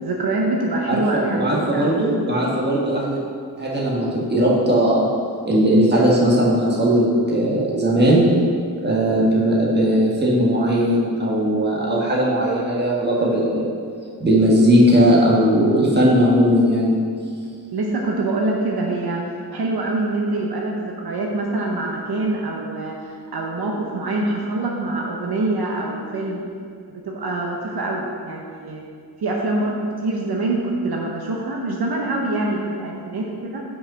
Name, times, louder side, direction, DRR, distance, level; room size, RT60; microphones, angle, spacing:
voice 1, 0.0-1.9 17.7-19.2 19.5-26.4 26.9-28.8 29.2-33.6, right 2 dB, 70° right, -1 dB, 0.9 m, -25 dB
voice 2, 1.3-3.2 3.6-5.1 5.5-8.3 8.8-13.7 14.2-16.9, equal, 25° right, -5 dB, 1.7 m, -18 dB
5.5 x 5.4 x 6.2 m, 2.2 s
wide cardioid pair, 115°, 39 cm